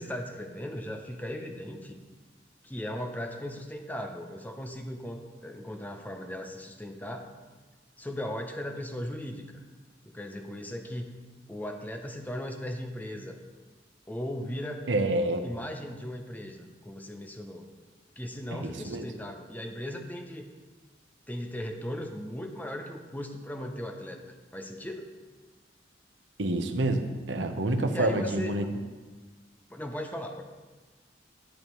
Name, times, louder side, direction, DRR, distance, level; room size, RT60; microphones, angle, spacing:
voice 1, 0.0-2.0 2.6-7.3 8.0-9.6 10.0-11.2 11.5-13.4 14.1-14.9 15.4-17.6 18.2-20.5 21.3-24.2 24.5-25.1 27.9-28.5 29.7-30.4, left 1 dB, 10° left, 4 dB, 0.6 m, -37 dB
voice 2, 14.9-15.4 18.5-19.1 26.4-28.6, right 1 dB, 75° right, 5 dB, 0.9 m, -28 dB
11.5 x 8.7 x 3.1 m, 1.4 s
head